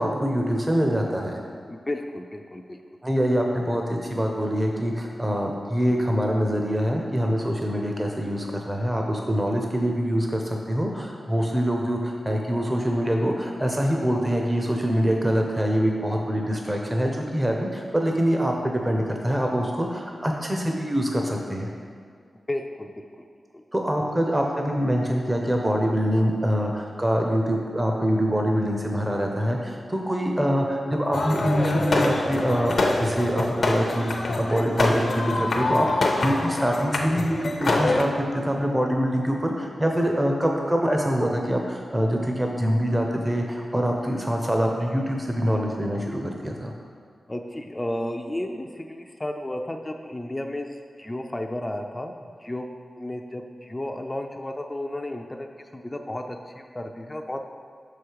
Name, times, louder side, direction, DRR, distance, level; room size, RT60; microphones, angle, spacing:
voice 1, 0.0-1.4 3.0-21.7 23.7-32.7 33.0-34.1 34.4-35.9 36.2-46.7, equal, 15° right, 1 dB, 0.7 m, -24 dB
voice 2, 1.7-2.8 22.5-23.3 23.5-23.6 47.3-50.7 51.0-52.7 53.0-57.5, left 1 dB, 20° left, 3 dB, 0.4 m, -33 dB
sound 1, 31.1-38.0, left 2 dB, 60° left, 0.7 m, -25 dB
6.2 x 4.9 x 4.7 m, 2.1 s
wide cardioid pair, 75°, 0 cm